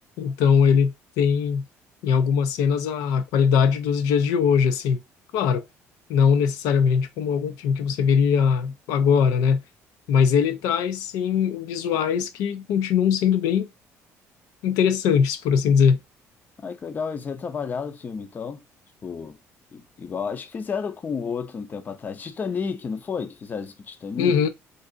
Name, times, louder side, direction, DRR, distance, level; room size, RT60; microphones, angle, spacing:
voice 1, 0.2-1.6 2.0-5.0 5.3-5.6 6.1-9.6 10.1-13.7 14.6-16.0 24.2-24.5, left 7 dB, 90° left, 0.5 m, -21 dB
voice 2, 16.6-18.6 19.0-19.4 19.7-24.3, left 6 dB, 30° left, 0.5 m, -31 dB
2.6 x 2.4 x 3.7 m
cardioid pair, 115°, 6 cm